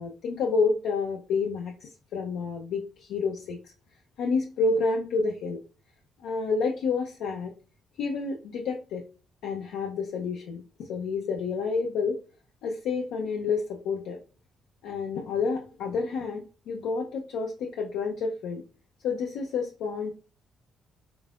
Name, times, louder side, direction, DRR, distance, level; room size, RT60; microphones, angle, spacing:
voice 1, 0.0-3.7 4.2-5.6 6.2-7.5 8.0-9.0 9.4-12.2 12.6-14.2 14.8-18.6 19.0-20.1, left 4 dB, 85° left, 0 dB, 0.6 m, -29 dB
3.8 x 3.7 x 2.3 m, 0.38 s
cardioid pair, 90°, 0 cm